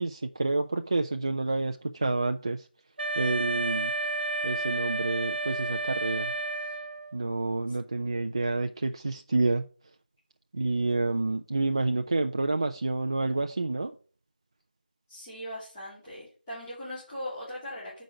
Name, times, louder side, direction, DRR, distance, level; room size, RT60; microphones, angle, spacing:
voice 1, 0.0-2.7 3.1-3.9 4.4-6.3 7.1-9.7 10.5-14.0, right 3 dB, 30° right, 0.4 m, -28 dB
Wind instrument woodwind instrument, 3.0-7.2, right 2 dB, 85° right, 0.5 m, -31 dB
voice 2, 15.1-18.0, left 1 dB, 10° left, 2.5 m, -39 dB
7.8 x 5.1 x 5.6 m
figure-of-eight pair, 175°, 5 cm